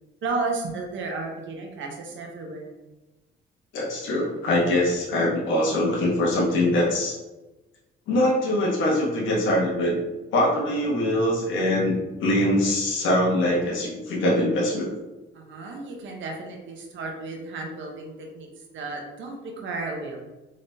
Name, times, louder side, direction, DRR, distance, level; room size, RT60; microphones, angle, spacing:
voice 1, 0.2-2.7 15.3-18.5 18.7-20.2, right 3 dB, 75° right, 1 dB, 0.9 m, -33 dB
voice 2, 3.7-7.2 8.1-9.9 10.3-14.9, left 1 dB, 75° left, -4 dB, 1.1 m, -23 dB
3.8 x 3.5 x 2.7 m, 1.1 s
cardioid pair, 90°, 20 cm